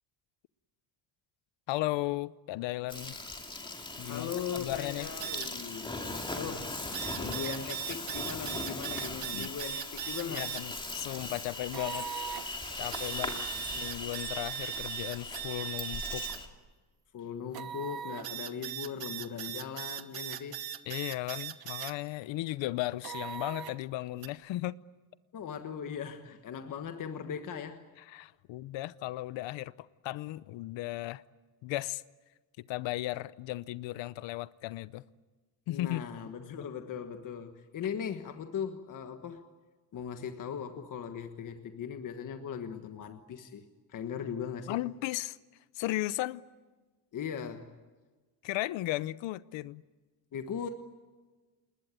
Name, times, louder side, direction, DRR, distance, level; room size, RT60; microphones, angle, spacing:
voice 1, 1.7-3.2 4.0-5.1 9.3-9.5 10.3-12.1 12.8-13.3 13.7-16.2 20.9-24.7 28.1-31.2 31.6-32.0 32.6-35.0 35.7-36.0 44.7-45.4 45.7-46.4 48.4-49.8, left 17 dB, 75° left, 0.8 m, -35 dB
Insect, 2.9-16.5, left 2 dB, 10° left, 2.4 m, -39 dB
voice 2, 4.0-10.6 13.0-13.6 17.1-20.6 25.3-27.8 35.7-39.4 39.9-44.8 47.1-47.7 50.3-50.7, left 7 dB, 40° left, 1.4 m, -39 dB
sound 1, 5.2-5.5 6.9-10.6 11.7-12.4 12.9-16.4 17.5-21.9 23.0-23.8 24.2-24.3, right 11 dB, 50° right, 1.3 m, -39 dB
28.0 x 20.5 x 9.1 m
cardioid pair, 170°, 46 cm